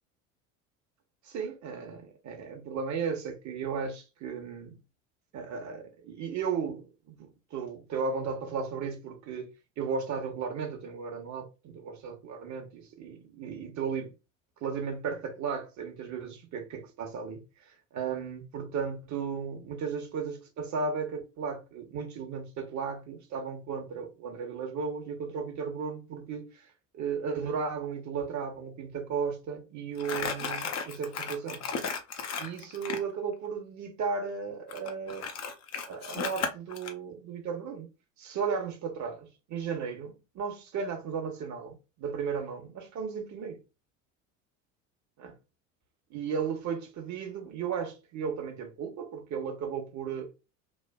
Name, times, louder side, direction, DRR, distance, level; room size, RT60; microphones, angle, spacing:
voice 1, 1.2-4.8 5.3-14.1 14.6-26.7 26.9-31.6 32.4-35.3 35.8-37.9 38.2-43.6 45.2-45.4 46.1-50.3, right 6 dB, 45° right, 1.1 m, -35 dB
Crumpling crinkling, 30.0-33.1 34.7-36.9, left 6 dB, 40° left, 0.8 m, -34 dB
3.2 x 2.3 x 2.3 m
hypercardioid pair, 75°, 40 cm